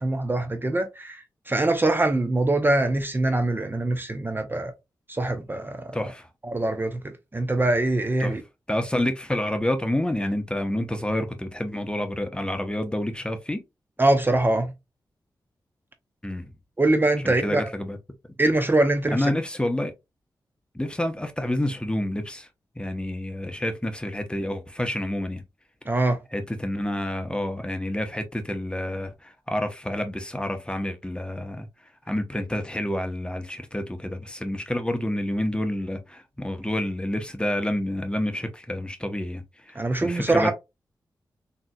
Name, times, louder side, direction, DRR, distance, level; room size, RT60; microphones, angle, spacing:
voice 1, 0.0-4.7 5.1-6.0 6.4-8.4 14.0-14.7 16.8-17.6 18.4-19.3 25.9-26.2 39.8-40.5, right 2 dB, 25° right, 0.6 m, -23 dB
voice 2, 5.9-6.3 8.2-8.4 8.7-13.6 16.2-16.5 17.2-18.0 19.1-19.9 20.7-22.5 22.8-25.4 26.3-31.7 32.1-40.5, left 1 dB, 10° left, 0.7 m, -28 dB
3.7 x 2.8 x 2.2 m
cardioid pair, 55°, 8 cm